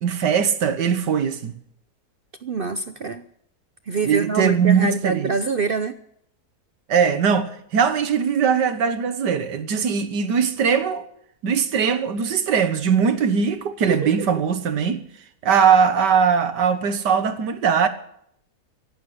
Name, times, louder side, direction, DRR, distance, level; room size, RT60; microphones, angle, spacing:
voice 1, 0.0-1.5 4.1-5.3 6.9-11.1 11.4-15.0 15.4-17.9, right 7 dB, 85° right, 1.9 m, -20 dB
voice 2, 2.4-3.2 3.9-6.0 13.9-14.3, right 4 dB, 55° right, 0.6 m, -25 dB
15.0 x 12.0 x 8.0 m
omnidirectional pair, 1.8 m